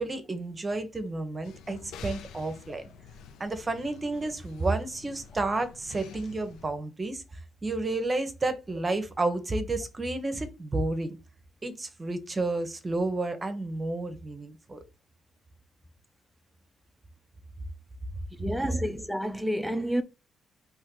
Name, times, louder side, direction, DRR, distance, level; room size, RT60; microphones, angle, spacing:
voice 1, 0.0-2.9 3.4-11.2 11.6-14.8, right 2 dB, 25° right, 1.0 m, -31 dB
sound 1, 1.4-6.7, left 7 dB, 85° left, 0.6 m, -49 dB
voice 2, 18.4-20.0, equal, ahead, 0.6 m, -29 dB
4.5 x 3.1 x 3.8 m
cardioid pair, 90°, 0 cm